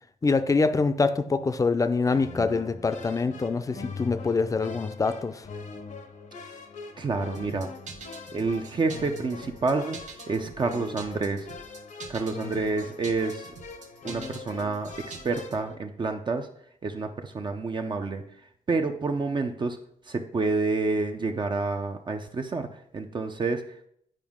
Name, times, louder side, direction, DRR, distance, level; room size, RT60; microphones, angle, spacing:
voice 1, 0.2-5.5, left 4 dB, 25° left, 10 dB, 0.5 m, -25 dB
sound 1, 2.0-15.8, left 4 dB, 75° left, 0.9 m, -42 dB
voice 2, 7.0-7.7 8.3-11.5 12.1-13.5 14.0-16.5 16.8-19.8 20.0-23.9, right 3 dB, 35° right, 5 dB, 0.5 m, -29 dB
sound 2, 7.3-15.6, right 5 dB, 70° right, 0.8 m, -45 dB
9.0 x 5.0 x 3.6 m, 0.68 s
wide cardioid pair, 130°, 13 cm